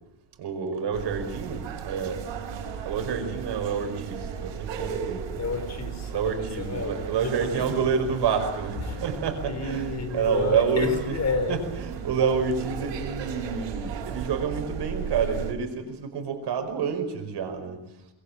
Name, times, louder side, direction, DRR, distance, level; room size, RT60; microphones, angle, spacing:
voice 1, 0.4-2.3 2.8-5.3 6.1-11.2 11.5-17.8, right 6 dB, 65° right, 5.2 m, -28 dB
sound 1, 0.9-15.5, right 7 dB, 85° right, 5.0 m, -35 dB
voice 2, 5.4-7.9 8.8-9.0 9.4-11.8, left 4 dB, 35° left, 4.2 m, -31 dB
23.5 x 22.0 x 8.6 m
cardioid pair, 145°, 43 cm